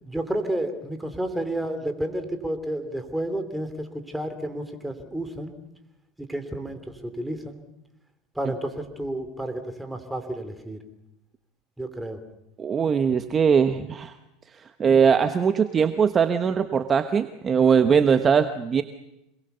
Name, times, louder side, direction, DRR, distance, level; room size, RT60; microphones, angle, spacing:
voice 1, 0.0-5.5 6.2-7.6 8.3-10.8 11.8-12.2, right 1 dB, 5° right, 6 dB, 3.1 m, -31 dB
voice 2, 12.6-14.1 14.8-18.8, right 6 dB, 25° right, 9 dB, 1.1 m, -21 dB
27.0 x 21.0 x 6.9 m, 0.88 s
supercardioid pair, 115°, 0 cm